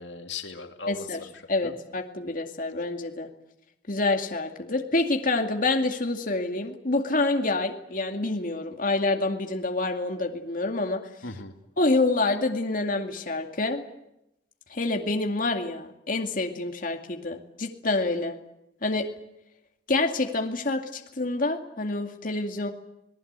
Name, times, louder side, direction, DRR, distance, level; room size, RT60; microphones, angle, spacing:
voice 1, 0.0-1.7 11.2-11.5, left 4 dB, 80° left, 5 dB, 2.3 m, -38 dB
voice 2, 0.9-1.2 1.5-3.3 3.9-11.0 11.8-13.8 14.7-18.4 18.8-19.1 19.9-22.7, left 2 dB, 50° left, 3 dB, 2.3 m, -27 dB
28.0 x 19.0 x 8.2 m, 0.85 s
head